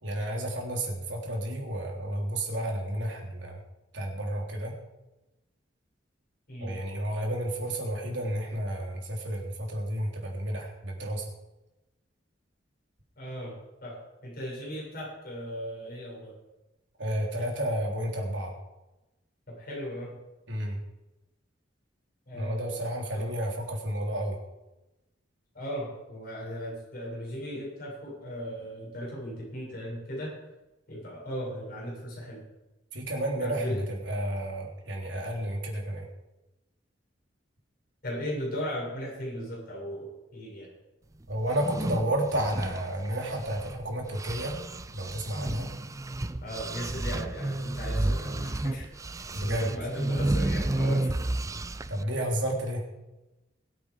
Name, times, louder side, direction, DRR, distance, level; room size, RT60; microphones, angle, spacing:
voice 1, 0.0-3.6 3.9-4.8 6.6-11.2 17.0-18.5 20.5-20.8 22.3-24.4 32.9-33.8 34.0-36.1 41.3-44.6 44.9-45.7 49.3-49.7 51.9-52.8, right 1 dB, 75° right, 0 dB, 3.6 m, -31 dB
voice 2, 13.2-16.3 19.5-20.1 22.3-22.8 23.1-23.3 25.5-30.3 30.9-32.4 33.4-33.8 38.0-40.1 40.3-40.7 46.4-48.9 49.1-51.1, equal, 50° left, -4 dB, 7.0 m, -37 dB
sound 1, 41.5-43.8 44.1-52.0, right 1 dB, 15° right, 0.5 m, -31 dB
22.5 x 8.5 x 5.0 m, 1.0 s
head